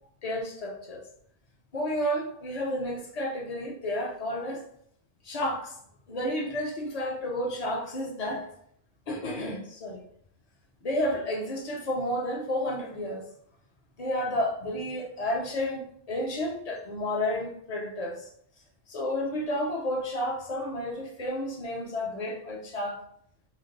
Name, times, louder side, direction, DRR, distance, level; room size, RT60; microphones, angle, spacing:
voice 1, 0.2-1.0 1.7-4.6 5.2-5.8 6.1-8.5 9.1-10.0 10.8-13.3 14.0-18.3 18.9-23.0, left 1 dB, 35° left, 0.8 m, -31 dB
3.5 x 3.2 x 3.9 m
omnidirectional pair, 1.2 m